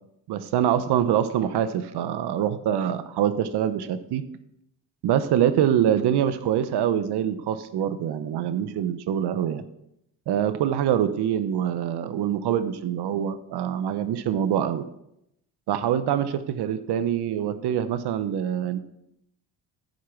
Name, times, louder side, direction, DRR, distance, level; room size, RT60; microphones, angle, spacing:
voice 1, 0.3-4.2 5.0-9.6 10.3-14.8 15.7-18.8, right 10 dB, 65° right, 12 dB, 0.9 m, -25 dB
10.5 x 4.7 x 5.9 m, 0.81 s
supercardioid pair, 75°, 42 cm